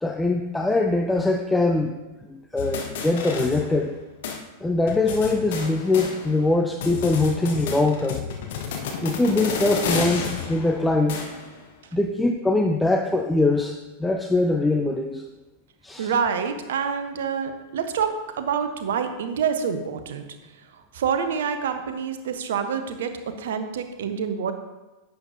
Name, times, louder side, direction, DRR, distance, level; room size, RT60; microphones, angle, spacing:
voice 1, 0.0-1.9 2.3-3.9 4.6-8.3 9.0-11.2 11.9-15.2 15.8-16.1, left 2 dB, 5° left, 4 dB, 0.5 m, -22 dB
sound 1, 2.6-4.0 4.2-4.4 4.9-6.5 6.8-11.6, left 6 dB, 55° left, 1.1 m, -31 dB
voice 2, 16.0-20.2 20.9-23.1 23.4-24.5, right 7 dB, 60° right, 8 dB, 0.8 m, -27 dB
10.5 x 7.9 x 2.6 m, 1.1 s
figure-of-eight pair, 90°, 0 cm